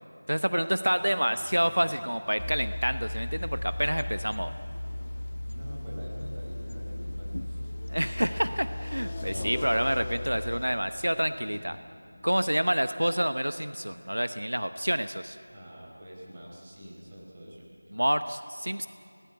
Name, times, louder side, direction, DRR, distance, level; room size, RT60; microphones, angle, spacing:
voice 1, 0.3-4.5 7.9-11.8 12.2-15.4 17.9-18.9, equal, 80° right, 11 dB, 0.8 m, -28 dB
sound 1, 0.9-16.5 16.8-16.9 17.5-17.6 17.8-17.9, left 2 dB, 20° left, 1.2 m, -46 dB
sound 2, 2.4-10.6, left 1 dB, 60° left, 1.2 m, -36 dB
voice 2, 5.4-7.7 15.5-17.7, equal, 20° right, -4 dB, 4.2 m, -45 dB
27.5 x 18.5 x 8.9 m, 2.6 s
figure-of-eight pair, 170°, 0 cm